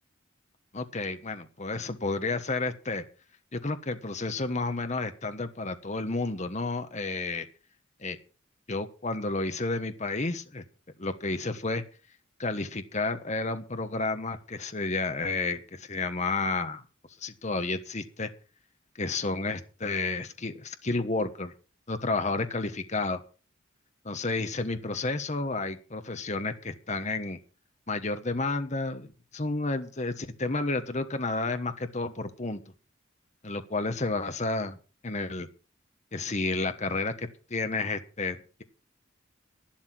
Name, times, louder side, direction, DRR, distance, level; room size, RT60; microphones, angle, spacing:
voice 1, 0.7-3.0 3.5-7.5 8.0-8.2 8.7-10.6 11.0-11.8 12.4-16.8 17.2-18.3 19.0-21.5 21.9-23.2 24.0-27.4 27.9-32.6 33.4-34.8 35.0-35.5 36.1-38.6, left 3 dB, 35° left, 9 dB, 1.2 m, -31 dB
12.0 x 11.5 x 6.1 m, 0.36 s
head